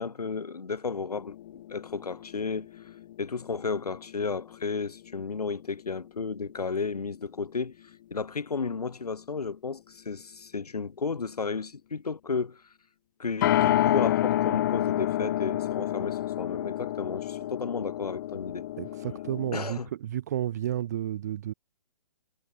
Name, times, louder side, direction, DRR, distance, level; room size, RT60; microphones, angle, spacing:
voice 1, 0.0-2.7 3.2-7.7 8.1-12.6 13.2-18.7 19.5-19.9, left 5 dB, 70° left, 2.0 m, -33 dB
sound 1, 1.1-4.9 5.2-5.3 13.4-19.7, left 13 dB, 30° left, 0.6 m, -29 dB
voice 2, 18.8-21.5, right 11 dB, 25° right, 0.4 m, -32 dB
figure-of-eight pair, 130°, 20 cm